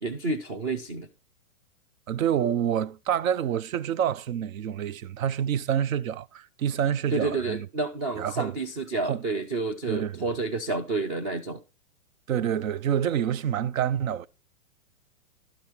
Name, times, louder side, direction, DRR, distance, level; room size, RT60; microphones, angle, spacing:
voice 1, 0.0-1.1 7.1-11.6, right 3 dB, 20° right, 0.4 m, -29 dB
voice 2, 2.1-7.7 8.1-8.6 9.0-9.2 9.9-10.4 12.3-14.3, right 9 dB, 70° right, 0.7 m, -27 dB
11.5 x 5.3 x 4.5 m
hypercardioid pair, 130°, 42 cm